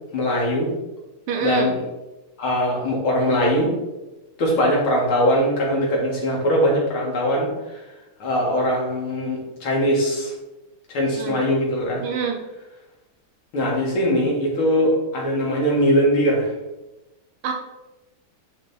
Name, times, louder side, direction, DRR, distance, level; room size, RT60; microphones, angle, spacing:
voice 1, 0.1-0.7 1.4-1.8 2.4-3.7 4.4-7.8 8.2-10.3 10.9-12.0 13.5-16.5, equal, 80° left, -3 dB, 2.7 m, -21 dB
voice 2, 1.3-1.7 11.2-11.5 12.0-12.4 17.4-17.5, right 6 dB, 90° right, 2 dB, 1.7 m, -25 dB
10.0 x 3.5 x 4.1 m, 1.0 s
omnidirectional pair, 2.3 m